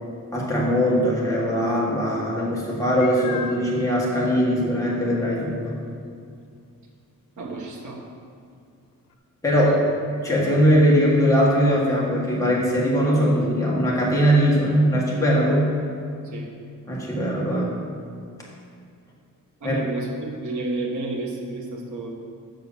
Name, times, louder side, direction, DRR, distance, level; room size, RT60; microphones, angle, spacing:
voice 1, 0.3-5.8 9.4-9.8 10.2-15.7 16.9-17.8 19.6-19.8, equal, 10° left, -5 dB, 1.7 m, -20 dB
Meow, 3.0-3.7 4.4-4.5 5.0-5.1 9.1-9.2, left 7 dB, 90° left, 0.8 m, -35 dB
voice 2, 7.4-8.0 16.2-16.5 19.6-22.1, right 2 dB, 60° right, -2 dB, 1.2 m, -31 dB
7.8 x 5.8 x 6.9 m, 2.3 s
wide cardioid pair, 165°, 33 cm